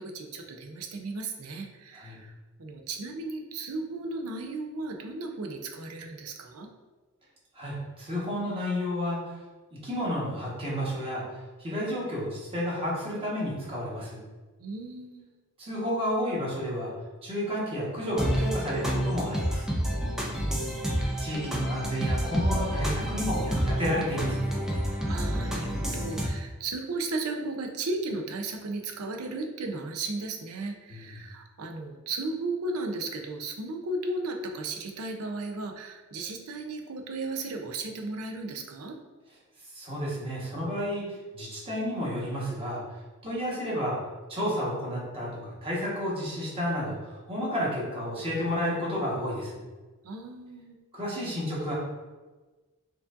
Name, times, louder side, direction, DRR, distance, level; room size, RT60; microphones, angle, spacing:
voice 1, 0.0-2.3 2.6-6.7 14.6-15.3 20.3-20.8 25.0-39.0 50.0-50.8, right 2 dB, 75° right, 4 dB, 0.5 m, -35 dB
voice 2, 7.5-9.3 9.8-11.2 11.6-14.2 15.6-16.9 17.2-19.7 21.2-24.5 30.9-31.1 39.7-42.8 43.2-44.0 44.3-49.6 50.9-51.7, equal, 25° right, -6 dB, 1.2 m, -31 dB
sound 1, 18.2-26.3, equal, ahead, 0.4 m, -29 dB
4.6 x 2.6 x 2.5 m, 1.3 s
head